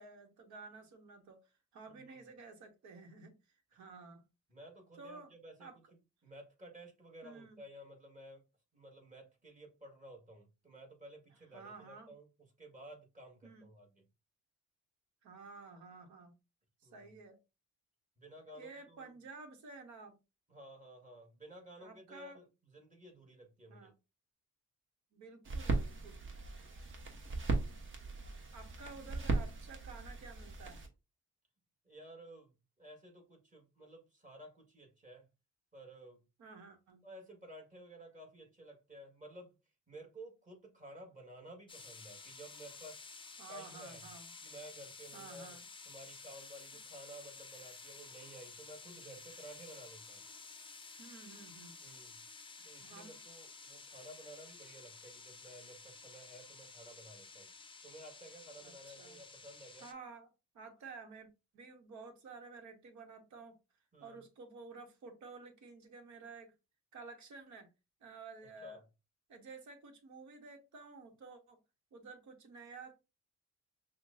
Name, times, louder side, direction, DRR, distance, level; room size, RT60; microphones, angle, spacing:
voice 1, 0.0-3.3 3.7-4.2 5.0-5.3 5.6-5.8 7.2-7.6 11.5-12.1 13.4-13.6 15.2-16.3 16.8-17.4 18.5-20.2 21.8-22.4 23.7-23.9 25.1-26.2 28.5-30.9 36.4-37.0 43.4-44.3 45.1-45.6 51.0-51.7 52.8-53.2 58.6-58.7 59.0-59.2 59.8-60.3 60.5-63.5 64.0-66.5 66.9-67.7 68.0-68.8 69.3-71.6 71.9-73.0, right 4 dB, 70° right, 1.1 m, -52 dB
voice 2, 1.9-2.2 4.5-5.8 6.2-8.4 8.7-12.3 12.6-14.1 16.8-17.1 18.2-19.1 20.5-23.9 26.6-26.8 31.8-35.3 35.7-36.2 37.0-39.6 39.9-43.0 43.5-44.1 44.4-45.6 45.9-50.2 51.8-52.2 52.6-57.5 57.8-59.9 63.9-64.2 68.6-68.8, right 1 dB, 25° right, 1.7 m, -54 dB
sound 1, 25.4-30.9, right 3 dB, 40° right, 1.1 m, -38 dB
sound 2, 41.7-59.9, left 4 dB, 15° left, 0.5 m, -53 dB
5.8 x 2.2 x 2.6 m
cardioid pair, 90°, 30 cm